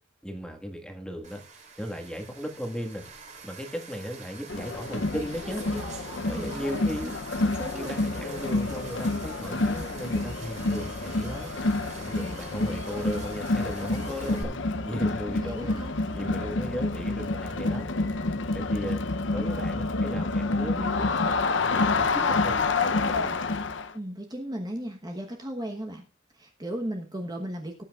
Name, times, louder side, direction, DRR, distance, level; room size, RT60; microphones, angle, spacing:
voice 1, 0.2-1.4 1.8-3.0 3.4-5.8 6.2-7.3 7.7-11.5 11.9-14.5 14.8-15.8 16.1-17.9 18.5-19.0 19.3-21.2 21.5-23.4, equal, 5° left, 4 dB, 1.7 m, -36 dB
sound 1, 1.2-14.4, right 4 dB, 40° right, 3.0 m, -45 dB
Crowd, 4.5-23.9, left 3 dB, 70° left, 0.7 m, -28 dB
voice 2, 6.2-7.1 7.4-8.0 15.3-16.5 23.9-26.0 26.3-27.8, right 1 dB, 20° right, 3 dB, 1.1 m, -36 dB
18.0 x 8.7 x 2.4 m, 0.35 s
head